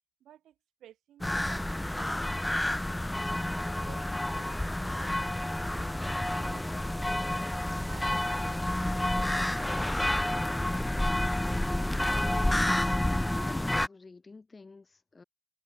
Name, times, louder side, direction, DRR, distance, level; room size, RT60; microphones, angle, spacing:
voice 1, 0.2-2.9 3.7-7.4 7.9-10.8, right 12 dB, 65° right, 5.0 m, -56 dB
sound 1, 1.2-13.9, left 1 dB, 5° left, 0.3 m, -29 dB
voice 2, 4.1-4.4 12.1-12.9 13.4-15.2, left 3 dB, 25° left, 2.4 m, -48 dB
cardioid pair, 90°, 0 cm